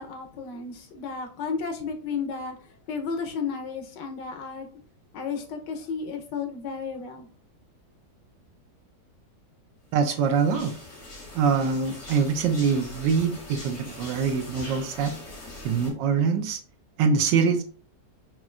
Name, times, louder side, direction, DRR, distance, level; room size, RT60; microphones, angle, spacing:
voice 1, 0.0-4.7 5.1-7.3, left 5 dB, 90° left, 5 dB, 1.4 m, -33 dB
voice 2, 9.9-10.7 11.3-15.1 15.6-16.6 17.0-17.6, right 6 dB, 85° right, 7 dB, 1.3 m, -24 dB
sound 1, 10.0-15.9, left 2 dB, 40° left, 1.7 m, -42 dB
5.3 x 3.0 x 2.4 m, 0.42 s
omnidirectional pair, 1.9 m